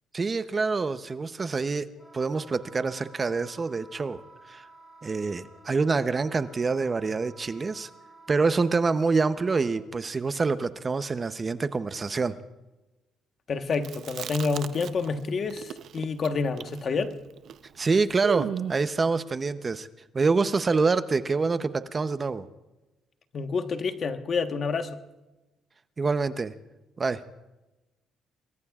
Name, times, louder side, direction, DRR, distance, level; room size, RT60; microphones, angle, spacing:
voice 1, 0.1-1.9 2.1-4.2 4.5-4.7 5.0-7.9 8.3-12.3 17.8-19.9 20.1-22.5 26.0-26.5 27.0-27.2, right 4 dB, 30° right, 0.7 m, -26 dB
Wind instrument woodwind instrument, 1.9-9.8, right 2 dB, 10° left, 6.8 m, -53 dB
voice 2, 13.5-17.2 23.3-25.0, left 4 dB, 45° left, 1.2 m, -28 dB
Chewing mastication, 13.7-15.2 15.5-18.9, right 9 dB, 65° right, 0.6 m, -36 dB
27.5 x 21.5 x 2.4 m
cardioid pair, 105°, 0 cm